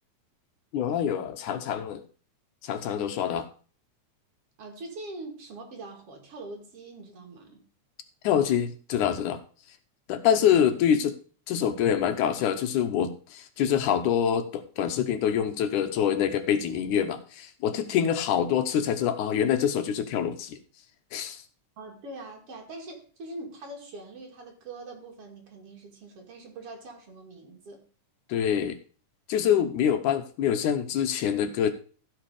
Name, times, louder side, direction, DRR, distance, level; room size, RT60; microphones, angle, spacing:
voice 1, 0.7-2.0 2.6-3.5 8.2-9.4 10.1-11.2 11.5-20.6 21.1-21.4 28.3-28.8 29.3-31.7, left 9 dB, 75° left, 9 dB, 2.5 m, -25 dB
voice 2, 4.6-7.6 10.6-10.7 21.8-27.8, right 2 dB, 50° right, 2 dB, 3.0 m, -43 dB
15.0 x 5.1 x 4.9 m, 0.39 s
omnidirectional pair, 3.6 m